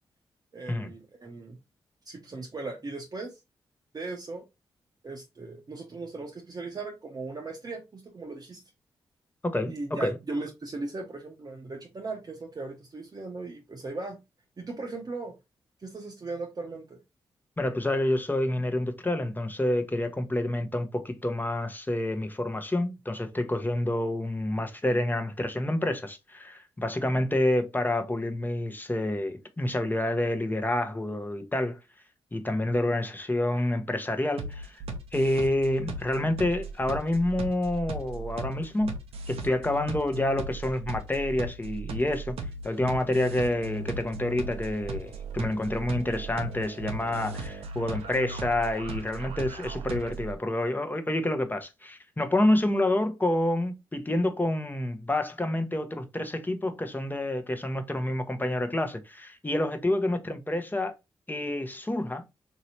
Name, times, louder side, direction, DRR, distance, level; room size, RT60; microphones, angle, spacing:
voice 1, 0.5-1.6 2.1-3.4 3.9-4.4 5.0-8.6 9.6-14.2 14.6-15.3 15.8-17.0, right 3 dB, 40° right, 0.7 m, -38 dB
voice 2, 9.4-10.2 17.6-31.8 32.3-34.8 35.1-38.9 39.3-42.4 42.6-60.9 61.3-62.2, left 1 dB, 20° left, 0.8 m, -28 dB
sound 1, 34.4-50.3, right 3 dB, 75° right, 0.6 m, -37 dB
3.1 x 2.8 x 2.8 m
supercardioid pair, 45°, 10 cm